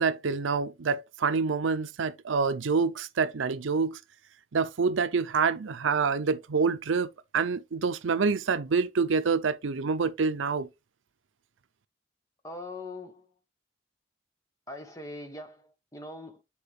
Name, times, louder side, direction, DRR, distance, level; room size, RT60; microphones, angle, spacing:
voice 1, 0.0-4.0 4.5-10.7, right 5 dB, 90° right, 0.6 m, -27 dB
voice 2, 12.4-13.3 14.7-16.4, left 2 dB, 15° left, 1.1 m, -41 dB
8.7 x 4.4 x 3.2 m
head